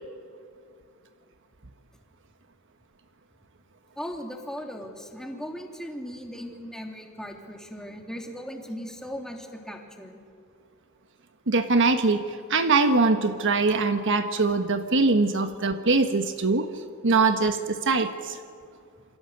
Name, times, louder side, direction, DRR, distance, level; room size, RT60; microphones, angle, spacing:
voice 1, 4.0-10.2, equal, 5° left, 2 dB, 2.9 m, -38 dB
voice 2, 11.5-16.7 17.0-18.4, right 3 dB, 55° right, 8 dB, 1.3 m, -22 dB
28.0 x 25.0 x 8.0 m, 2.2 s
head